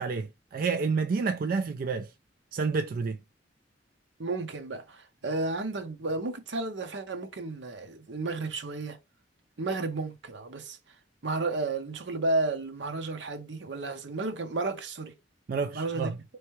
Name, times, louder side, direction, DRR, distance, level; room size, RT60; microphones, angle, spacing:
voice 1, 0.0-2.1 2.5-3.2 15.5-16.2, right 4 dB, 50° right, 0.3 m, -29 dB
voice 2, 4.2-9.0 9.6-10.8 11.2-15.1 15.7-16.1, right 3 dB, 75° right, 0.8 m, -32 dB
4.5 x 3.1 x 3.1 m
head